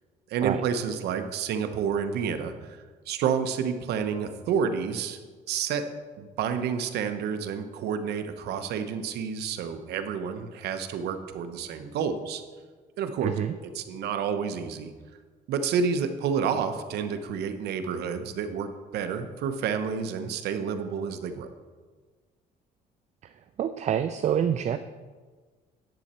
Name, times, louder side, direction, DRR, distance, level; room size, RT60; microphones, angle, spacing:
voice 1, 0.3-2.8 3.1-5.2 5.5-5.9 6.2-12.4 13.0-13.3 13.6-14.9 15.5-21.5, right 6 dB, 75° right, 9 dB, 1.0 m, -29 dB
voice 2, 13.2-13.5 23.2-23.3 23.6-24.8, right 9 dB, 45° right, 10 dB, 0.4 m, -26 dB
10.5 x 7.9 x 4.3 m, 1.4 s
cardioid pair, 110°, 17 cm